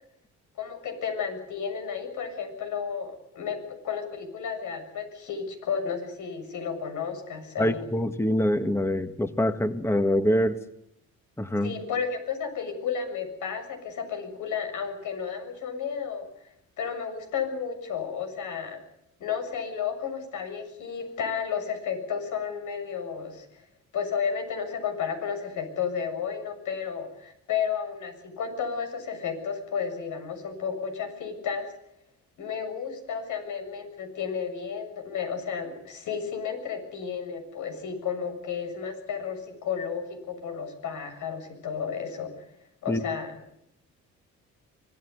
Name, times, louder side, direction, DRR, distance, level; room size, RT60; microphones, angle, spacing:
voice 1, 0.6-7.8 11.6-16.3 16.8-18.8 19.2-23.5 23.9-31.7 32.4-42.3 42.8-43.4, left 7 dB, 80° left, 7 dB, 7.1 m, -32 dB
voice 2, 7.6-10.6 11.4-11.7 42.9-43.0, left 1 dB, 10° left, 9 dB, 1.7 m, -25 dB
25.0 x 17.5 x 9.6 m, 0.76 s
cardioid pair, 90°, 30 cm